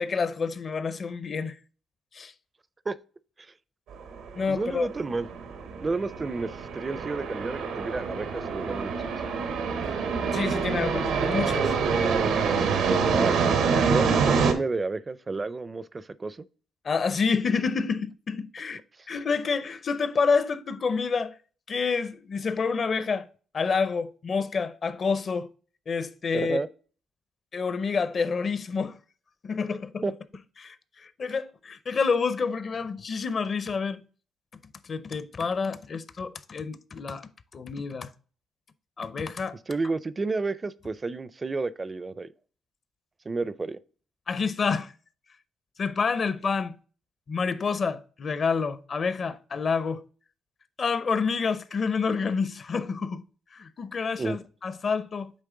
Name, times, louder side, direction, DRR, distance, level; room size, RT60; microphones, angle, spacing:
voice 1, 0.0-1.6 2.1-2.3 4.3-4.9 10.3-11.7 16.8-18.8 19.1-21.4 21.7-23.3 23.5-25.5 25.9-26.6 27.5-29.0 29.4-30.0 30.6-34.0 34.8-38.1 39.0-39.6 44.3-44.9 45.8-46.8 47.3-50.0 50.8-53.2 53.5-55.3, left 5 dB, 45° left, 0.6 m, -28 dB
sound 1, 3.9-14.5, right 5 dB, 90° right, 1.1 m, -26 dB
voice 2, 4.5-5.3 5.8-9.0 13.1-13.3 13.8-16.5 26.3-26.7 30.0-30.1 39.7-42.3 43.3-43.8 54.2-54.4, right 3 dB, 25° right, 0.4 m, -31 dB
8.4 x 3.2 x 3.7 m
cardioid pair, 90°, 0 cm